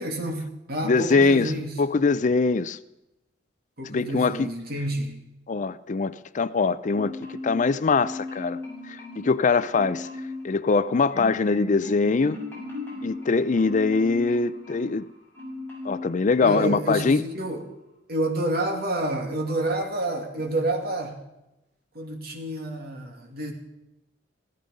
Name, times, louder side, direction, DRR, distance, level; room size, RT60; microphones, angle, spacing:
voice 1, 0.0-1.7 3.8-5.2 16.4-17.6 18.1-21.2 21.9-23.5, right 1 dB, 55° right, 2.6 m, -29 dB
voice 2, 0.8-1.5 1.8-2.8 3.8-4.5 5.5-8.6 8.9-10.1 10.4-12.4 13.0-15.1 15.8-17.2, left 4 dB, 40° left, 0.5 m, -23 dB
Marimba xylophone, 6.9-7.7 7.9-9.4 9.7-10.4 10.8-15.0 15.3-16.1 16.5-16.7, left 2 dB, 10° left, 7.0 m, -37 dB
15.5 x 14.0 x 5.3 m
head